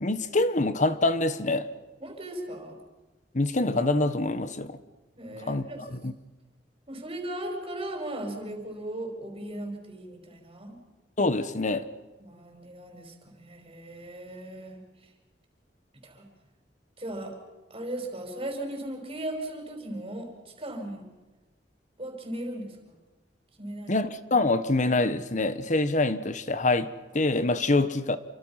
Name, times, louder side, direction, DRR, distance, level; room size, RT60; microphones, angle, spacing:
voice 1, 0.0-1.7 3.3-4.8 5.5-6.1 11.2-11.9 23.9-28.2, left 2 dB, 45° left, 1.3 m, -25 dB
voice 2, 2.0-2.8 5.2-5.8 6.9-10.8 12.2-14.8 16.0-16.2 17.0-17.4 17.7-21.1 22.0-22.9 23.6-24.0, right 1 dB, 35° right, 5.4 m, -37 dB
28.5 x 25.0 x 5.9 m
head